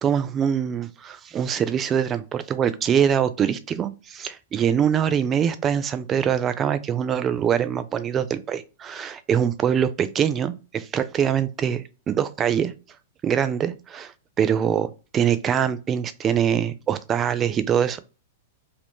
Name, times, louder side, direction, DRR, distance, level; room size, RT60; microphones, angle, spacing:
voice 1, 0.0-12.7 13.2-14.1 14.4-18.0, right 8 dB, 25° right, 0.4 m, -23 dB
2.6 x 2.6 x 3.5 m
hypercardioid pair, 105°, 0 cm